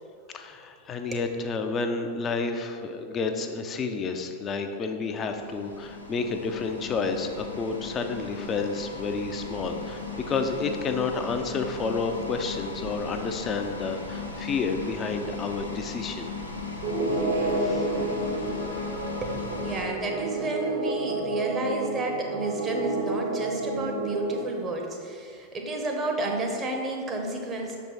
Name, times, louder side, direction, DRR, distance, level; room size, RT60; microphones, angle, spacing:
voice 1, 0.3-16.3 17.6-17.9, left 4 dB, 25° left, 6 dB, 0.5 m, -30 dB
sound 1, 5.0-19.9, left 4 dB, 80° left, 0.9 m, -37 dB
sound 2, 16.8-24.4, right 2 dB, 65° right, 1.5 m, -30 dB
voice 2, 19.2-27.8, right 1 dB, 20° right, 1 dB, 0.9 m, -31 dB
6.8 x 4.6 x 4.1 m, 2.3 s
figure-of-eight pair, 90°, 0 cm